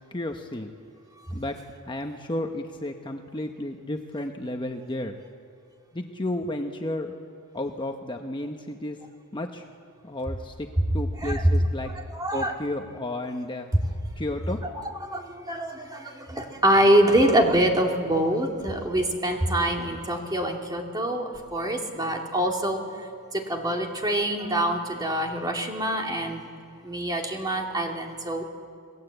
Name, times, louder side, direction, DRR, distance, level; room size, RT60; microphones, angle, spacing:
voice 1, 0.1-0.7 1.3-1.6 1.9-5.2 5.9-7.2 7.5-9.0 9.3-9.6 10.0-10.7 10.9-11.9 12.3-13.7 14.2-14.6, left 1 dB, 20° left, 4 dB, 1.0 m, -32 dB
voice 2, 12.1-12.5 14.6-14.7 15.0-22.8 23.3-26.5 26.8-28.4, right 1 dB, 20° right, 1 dB, 2.5 m, -25 dB
27.5 x 19.0 x 8.0 m, 2.2 s
head